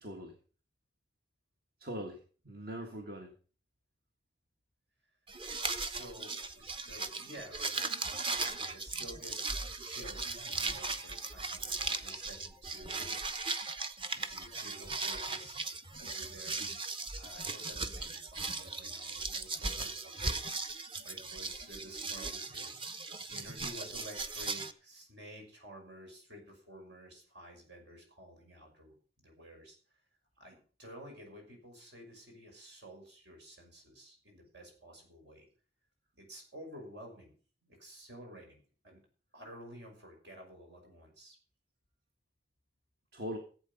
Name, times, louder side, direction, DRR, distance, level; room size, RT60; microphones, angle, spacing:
voice 1, 0.0-0.3 1.8-3.3 43.1-43.4, equal, 55° right, 3 dB, 1.7 m, -41 dB
sound 1, 5.3-24.7, right 3 dB, 30° right, 0.8 m, -38 dB
voice 2, 5.6-9.4 9.8-13.2 13.5-13.8 14.1-16.6 17.1-29.8 30.4-35.5 36.2-37.3 37.6-39.0 39.3-41.4, equal, 75° right, 2 dB, 6.0 m, -52 dB
15.0 x 8.3 x 5.6 m, 0.40 s
head